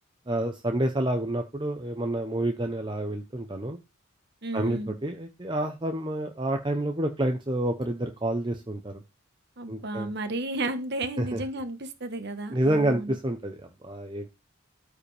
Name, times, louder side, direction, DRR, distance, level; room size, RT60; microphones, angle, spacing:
voice 1, 0.3-3.8 4.5-9.0 9.7-10.1 11.2-11.4 12.5-14.3, right 1 dB, 20° right, 5 dB, 0.7 m, -28 dB
voice 2, 4.4-4.9 9.6-13.2, right 2 dB, 50° right, 9 dB, 1.2 m, -33 dB
13.0 x 5.0 x 3.3 m, 0.25 s
head